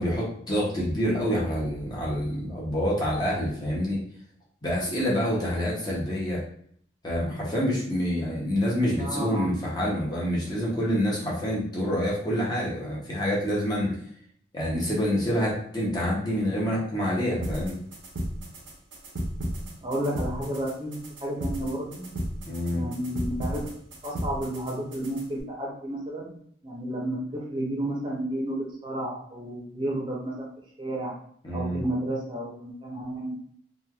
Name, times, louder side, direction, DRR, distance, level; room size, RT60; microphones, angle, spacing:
voice 1, 0.0-4.0 4.6-6.4 7.0-14.0 14.5-17.8 22.5-22.8 31.4-31.8, equal, 20° left, -5 dB, 0.6 m, -27 dB
voice 2, 9.0-9.6 19.8-22.1 22.7-23.7 24.0-26.3 26.6-30.5 30.8-31.1 31.5-33.4, right 1 dB, 25° right, -3 dB, 0.7 m, -32 dB
sound 1, 17.4-25.4, equal, 80° right, 0.7 m, -35 dB
3.0 x 2.3 x 2.3 m, 0.63 s
head